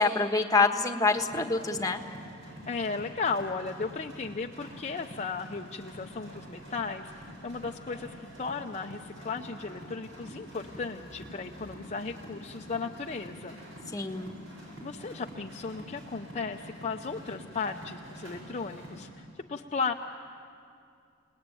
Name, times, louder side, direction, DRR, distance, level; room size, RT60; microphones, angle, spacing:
voice 1, 0.0-2.0 13.9-14.3, left 3 dB, 15° left, 5 dB, 1.3 m, -26 dB
sound 1, 1.1-19.1, equal, 70° right, 7.7 m, -46 dB
voice 2, 2.7-7.1 7.4-13.6 14.8-19.9, left 4 dB, 35° left, 3 dB, 0.6 m, -35 dB
29.5 x 19.0 x 9.1 m, 2.4 s
head